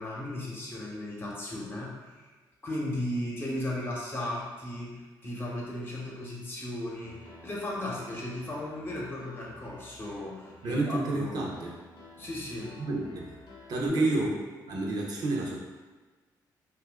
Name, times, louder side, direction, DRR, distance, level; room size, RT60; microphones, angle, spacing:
voice 1, 0.0-2.1 2.6-11.4 12.2-12.7 13.7-14.2, left 1 dB, 30° left, -4 dB, 0.8 m, -36 dB
Piano, 7.0-13.9, left 2 dB, 65° left, 0.7 m, -51 dB
voice 2, 10.6-11.7 12.8-13.4 13.7-14.3 14.7-15.6, right 2 dB, 60° right, -2 dB, 0.6 m, -29 dB
2.7 x 2.3 x 3.4 m, 1.3 s
cardioid pair, 105°, 8 cm